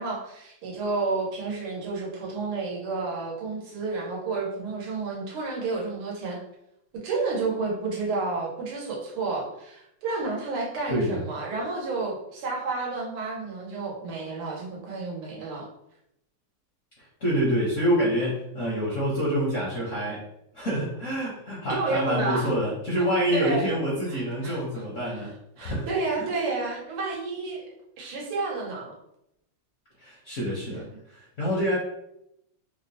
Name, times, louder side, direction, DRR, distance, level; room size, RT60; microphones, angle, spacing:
voice 1, 0.0-6.4 6.9-15.7 21.7-22.5 23.3-23.7 24.1-24.6 25.6-27.6 28.0-28.9 30.7-30.8, right 3 dB, 90° right, -3 dB, 1.8 m, -30 dB
voice 2, 10.9-11.2 17.0-20.2 20.5-25.9 26.2-26.3 30.0-30.8 31.1-31.8, equal, 55° left, -6 dB, 0.9 m, -27 dB
4.8 x 2.1 x 2.7 m, 0.80 s
omnidirectional pair, 2.4 m